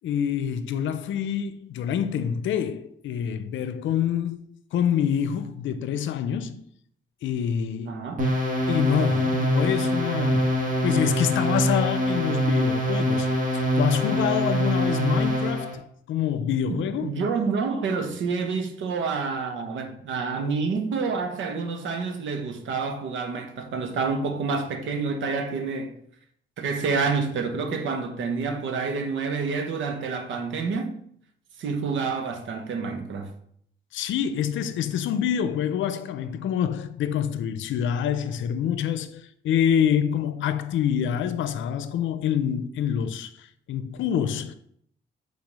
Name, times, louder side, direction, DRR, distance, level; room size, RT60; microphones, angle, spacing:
voice 1, 0.0-4.4 4.7-6.6 7.2-8.0 8.7-10.5 10.8-17.1 33.9-44.5, left 9 dB, 75° left, 0.6 m, -26 dB
voice 2, 7.9-8.3 16.7-26.0 26.6-30.9 31.6-33.3, right 4 dB, 75° right, 1.0 m, -28 dB
sound 1, 8.2-15.7, equal, 40° right, 1.7 m, -24 dB
4.9 x 4.1 x 5.4 m
cardioid pair, 90°, 20 cm